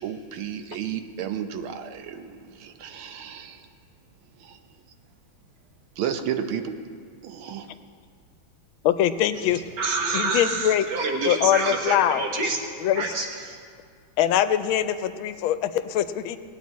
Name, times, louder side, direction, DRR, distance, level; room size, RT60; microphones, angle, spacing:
voice 1, 0.0-3.7 4.4-4.6 6.0-6.7 7.2-7.7, right 8 dB, 85° right, 7 dB, 1.6 m, -32 dB
voice 2, 8.8-9.6 10.1-10.9 11.2-12.2 12.8-13.1 14.2-16.4, left 11 dB, 85° left, 11 dB, 1.4 m, -23 dB
voice 3, 9.8-12.6 13.0-13.6, right 3 dB, 60° right, 1 dB, 1.9 m, -27 dB
18.5 x 9.1 x 4.2 m, 2.1 s
omnidirectional pair, 2.2 m